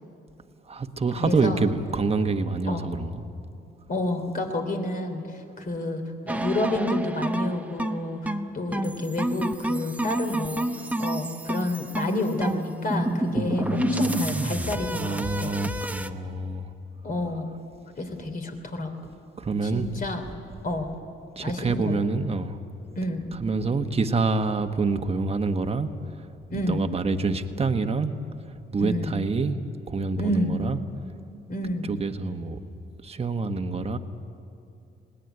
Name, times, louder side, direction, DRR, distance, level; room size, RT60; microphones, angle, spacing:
voice 1, 0.7-3.2 13.3-14.2 14.9-16.7 19.4-19.9 21.4-22.6 23.4-25.9 26.5-28.1 28.7-29.6 29.9-30.8 31.9-32.6 33.0-34.0, right 3 dB, 30° right, 7 dB, 1.3 m, -27 dB
voice 2, 1.2-1.6 2.7-2.9 3.9-15.5 17.0-17.5 18.0-18.9 19.6-20.2 20.6-20.9 21.4-22.0 23.0-23.2 26.5-26.8 28.8-29.2 30.2-30.6 31.5-31.9, left 1 dB, 45° left, 5 dB, 3.2 m, -29 dB
sound 1, 6.3-16.1, right 1 dB, 5° right, 0.9 m, -29 dB
20.5 x 18.0 x 9.2 m, 2.7 s
cardioid pair, 90°, 20 cm